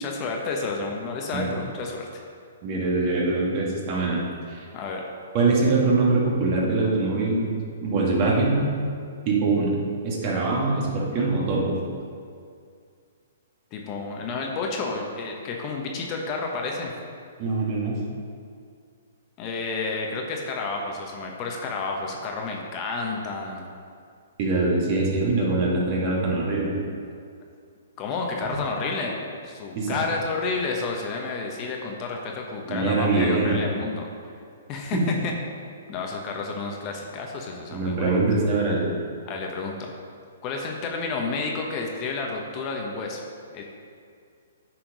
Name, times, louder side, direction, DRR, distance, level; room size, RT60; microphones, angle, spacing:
voice 1, 0.0-2.2 4.7-5.0 13.7-16.9 19.4-23.7 28.0-34.1 34.7-35.3 35.9-38.1 39.3-39.8 40.4-43.2 43.5-43.6, left 4 dB, 35° left, 1 dB, 1.0 m, -30 dB
voice 2, 2.6-4.2 4.5-4.7 5.3-8.7 9.3-11.8 17.4-18.0 24.4-26.7 28.4-28.5 29.7-30.0 32.7-33.6 34.9-35.0 37.7-38.9, right 3 dB, 40° right, -4 dB, 2.1 m, -23 dB
9.1 x 4.4 x 5.1 m, 2.2 s
hypercardioid pair, 130°, 0 cm